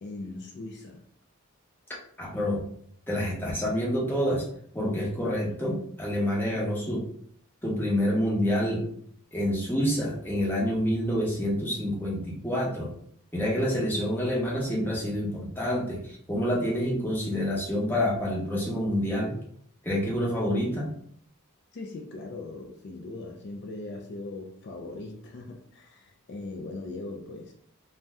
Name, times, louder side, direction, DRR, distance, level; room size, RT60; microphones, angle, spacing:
voice 1, 0.0-1.0 6.6-6.8 21.7-27.5, left 2 dB, 50° left, 2 dB, 0.4 m, -40 dB
voice 2, 2.2-2.6 3.1-4.5 4.7-7.0 7.6-8.8 9.3-12.9 13.3-19.4 19.8-20.9, equal, 10° left, -5 dB, 0.7 m, -27 dB
2.6 x 2.1 x 3.4 m, 0.63 s
head